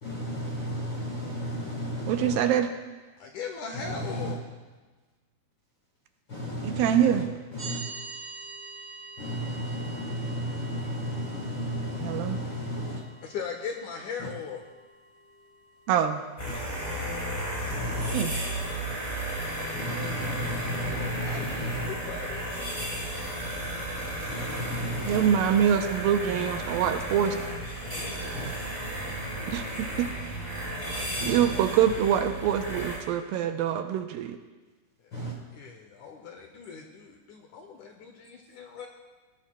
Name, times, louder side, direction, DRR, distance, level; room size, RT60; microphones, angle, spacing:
voice 1, 0.0-2.4 3.7-4.3 6.3-7.2 7.5-7.8 9.2-13.0 14.2-14.3 16.4-16.6 17.7-18.2 19.7-21.9 24.3-25.3 28.3-28.5 31.2-31.5 35.1-35.4, equal, 50° left, -2 dB, 1.4 m, -34 dB
voice 2, 2.1-2.7 6.6-7.3 12.0-12.4 15.9-16.2 18.1-18.3 25.1-27.4 29.5-30.1 31.2-34.4, right 9 dB, 80° right, 6 dB, 2.4 m, -25 dB
voice 3, 3.2-4.4 13.2-14.6 20.8-22.5 27.8-28.6 35.5-38.9, left 6 dB, 75° left, 3 dB, 1.9 m, -39 dB
sound 1, 7.6-17.6, right 4 dB, 35° right, 4.1 m, -46 dB
sound 2, 16.4-33.0, right 1 dB, 10° left, 4.3 m, -33 dB
19.5 x 16.0 x 2.2 m, 1.3 s
omnidirectional pair, 4.3 m